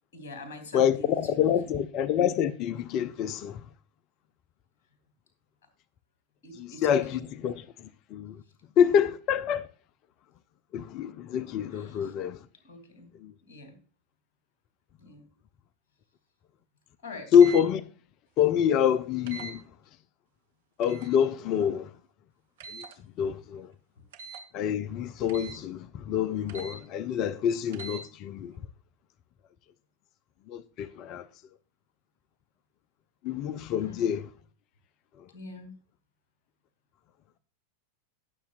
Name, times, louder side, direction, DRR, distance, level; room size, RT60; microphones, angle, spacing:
voice 1, 0.1-1.8 6.4-7.3 11.7-12.1 12.6-13.1 13.5-13.8 15.0-15.3 17.0-17.3 33.8-34.2 35.3-35.8, left 2 dB, 55° left, 3.1 m, -45 dB
voice 2, 0.7-3.6 6.6-8.4 8.8-9.7 10.7-12.4 13.2-13.3 17.3-17.8 18.4-19.6 20.8-21.9 22.7-22.9 23.2-23.7 24.5-28.5 30.5-31.3 33.2-34.3, left 8 dB, 40° left, 0.6 m, -26 dB
sound 1, 17.3-17.6 19.3-19.6 20.8-21.1 22.6-22.9 24.1-24.5 25.3-25.6 26.5-26.8 27.7-28.0, right 5 dB, 55° right, 1.4 m, -42 dB
18.5 x 7.0 x 2.4 m
figure-of-eight pair, 90°, 0 cm